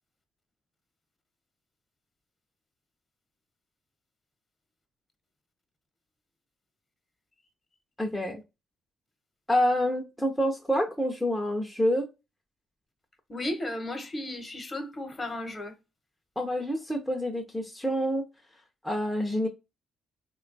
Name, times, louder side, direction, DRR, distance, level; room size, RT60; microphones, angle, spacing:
voice 1, 8.0-8.4 9.5-12.1 16.4-18.3 18.8-19.5, equal, 5° left, 0.6 m, -27 dB
voice 2, 13.3-15.7, left 1 dB, 30° left, 0.9 m, -34 dB
3.1 x 2.3 x 3.8 m
cardioid pair, 90°, 0 cm